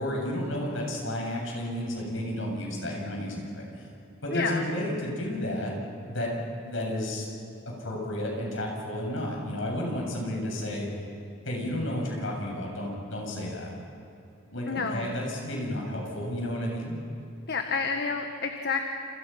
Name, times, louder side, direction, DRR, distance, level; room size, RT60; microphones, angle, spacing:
voice 1, 0.0-3.9 4.2-5.7 6.1-6.3 6.6-7.2 7.7-10.9 11.4-13.7 14.5-17.0, left 1 dB, 70° left, -1 dB, 7.8 m, -32 dB
voice 2, 4.3-4.7 14.7-15.1 17.5-18.9, left 4 dB, 55° left, 4 dB, 1.5 m, -29 dB
29.0 x 28.5 x 5.9 m, 2.8 s
head